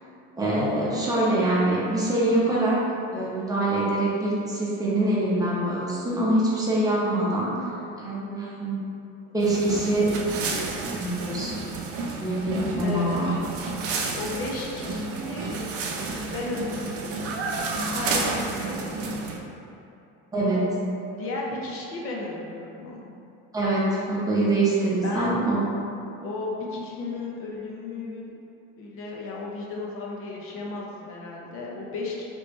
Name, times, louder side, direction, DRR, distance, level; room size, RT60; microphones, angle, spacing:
voice 1, 0.4-2.8 3.1-7.5 8.0-8.7 9.3-10.1 10.5-11.6 12.2-13.3 18.6-18.7 20.3-20.6 23.5-25.6, right 1 dB, 10° right, -8 dB, 0.8 m, -24 dB
sound 1, 9.4-19.4, right 3 dB, 50° right, 0.5 m, -31 dB
voice 2, 12.8-13.3 14.1-15.6 16.3-17.3 17.8-19.0 20.5-20.7 21.2-23.1 25.0-25.4 26.2-28.2 28.8-32.2, left 2 dB, 45° left, -3 dB, 0.6 m, -34 dB
3.2 x 3.0 x 3.1 m, 2.7 s
cardioid pair, 125°, 32 cm